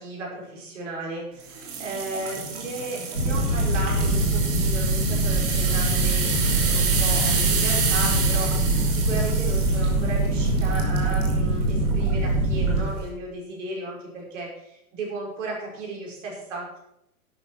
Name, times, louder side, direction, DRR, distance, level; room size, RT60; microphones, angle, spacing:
voice 1, 0.0-16.8, right 2 dB, 55° right, -2 dB, 5.6 m, -35 dB
sound 1, 1.5-11.4 11.9-12.1 12.7-12.8, right 5 dB, 30° right, 3.1 m, -29 dB
sound 2, 3.1-12.8, right 2 dB, 80° right, 3.4 m, -23 dB
11.5 x 9.7 x 6.0 m, 0.81 s
figure-of-eight pair, 100°, 44 cm